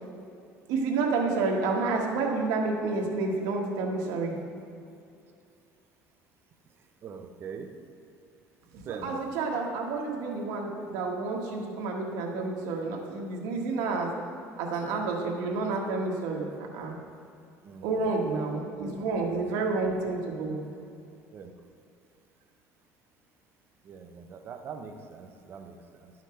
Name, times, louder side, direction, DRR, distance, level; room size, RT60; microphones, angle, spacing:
voice 1, 0.7-4.3 8.9-14.1 14.6-16.4 16.7-17.0 17.8-20.6, right 3 dB, 80° right, 0 dB, 1.5 m, -29 dB
voice 2, 7.0-7.7 8.8-9.2 17.6-18.1 18.8-19.0 20.5-20.6 21.3-21.5 23.8-26.1, right 6 dB, 40° right, 5 dB, 0.8 m, -42 dB
11.5 x 5.8 x 4.4 m, 2.5 s
cardioid pair, 145°, 6 cm